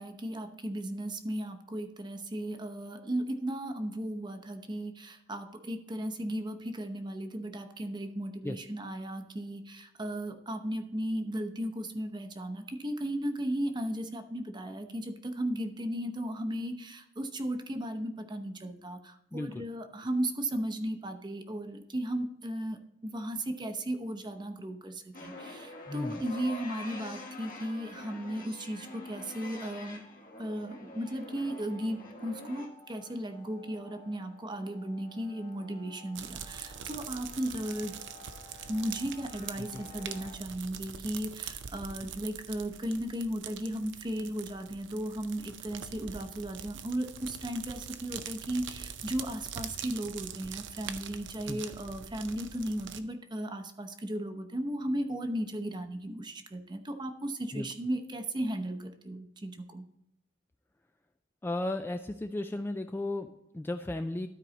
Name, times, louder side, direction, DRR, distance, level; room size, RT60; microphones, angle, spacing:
voice 1, 0.0-30.0 30.4-38.0 38.7-59.8, right 1 dB, 25° right, 7 dB, 0.8 m, -36 dB
voice 2, 19.3-19.6 25.9-26.2 39.6-39.8 51.5-51.6 57.5-57.7 61.4-64.3, left 1 dB, 10° left, 6 dB, 0.3 m, -35 dB
sound 1, 25.1-40.3, left 2 dB, 50° left, 1.5 m, -48 dB
sound 2, 36.1-53.0, right 8 dB, 75° right, 0.6 m, -43 dB
12.5 x 4.6 x 4.0 m, 0.81 s
head